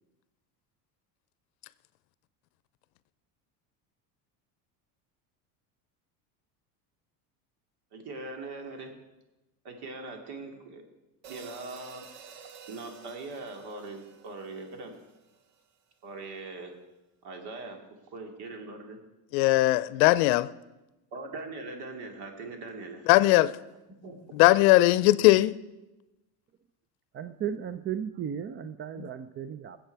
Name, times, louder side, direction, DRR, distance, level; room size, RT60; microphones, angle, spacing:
voice 1, 7.9-8.9 9.6-10.8 11.3-12.0 12.7-15.0 16.0-16.7 17.2-17.8 18.1-19.0 21.1-23.1 24.0-24.2, right 3 dB, 60° right, 2.6 m, -41 dB
sound 1, 11.2-15.6, right 7 dB, 80° right, 1.8 m, -50 dB
voice 2, 19.3-20.5 23.1-23.6 24.3-25.6 29.0-29.1, left 18 dB, 75° left, 0.7 m, -20 dB
voice 3, 27.1-29.8, right 8 dB, 30° right, 0.4 m, -35 dB
20.5 x 7.9 x 4.6 m
supercardioid pair, 115°, 44 cm